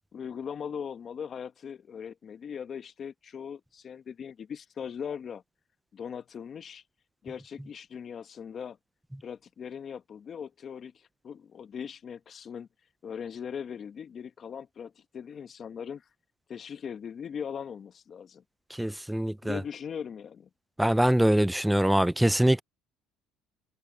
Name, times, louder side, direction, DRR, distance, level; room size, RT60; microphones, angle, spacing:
voice 1, 0.1-5.4 5.9-6.8 7.2-8.8 9.2-12.7 13.0-16.1 16.5-18.4 19.4-20.5, left 7 dB, 40° left, 1.3 m, -39 dB
voice 2, 18.8-19.6 20.8-22.6, right 1 dB, 5° right, 0.6 m, -23 dB
cardioid pair, 105°, 0 cm